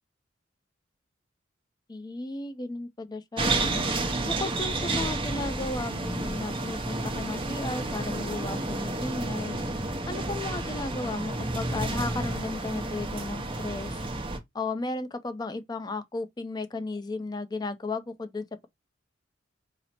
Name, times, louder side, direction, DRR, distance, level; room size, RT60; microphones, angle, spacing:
voice 1, 1.9-3.9 4.2-9.6 10.1-14.0 14.5-18.7, left 3 dB, 20° left, 0.4 m, -34 dB
sound 1, 3.4-14.4, right 2 dB, 30° right, 0.7 m, -31 dB
4.1 x 2.0 x 4.3 m
head